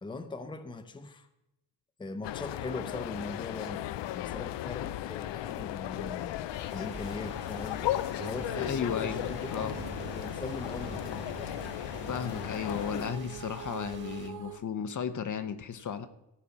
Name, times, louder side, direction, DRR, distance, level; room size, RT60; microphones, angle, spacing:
voice 1, 0.0-1.3 2.0-6.4 6.7-11.2, left 3 dB, 10° left, 0.7 m, -41 dB
sound 1, 2.2-13.1, left 14 dB, 90° left, 0.5 m, -36 dB
sound 2, 6.5-14.3, right 3 dB, 25° right, 1.8 m, -49 dB
sound 3, 8.2-14.6, right 9 dB, 45° right, 0.7 m, -45 dB
voice 2, 8.5-9.8 12.1-16.1, left 7 dB, 45° left, 0.8 m, -34 dB
14.5 x 5.0 x 8.5 m
wide cardioid pair, 155°, 42 cm